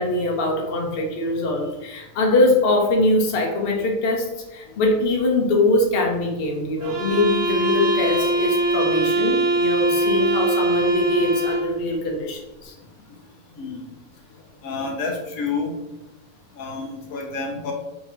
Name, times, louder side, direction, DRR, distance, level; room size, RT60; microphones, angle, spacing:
voice 1, 0.0-12.7, left 2 dB, 50° left, 0 dB, 0.8 m, -22 dB
sound 1, 6.8-11.8, right 2 dB, 70° right, 1.0 m, -22 dB
voice 2, 14.6-15.7 16.6-17.7, left 4 dB, 70° left, 0 dB, 1.1 m, -29 dB
2.8 x 2.7 x 4.2 m, 1.0 s
omnidirectional pair, 1.6 m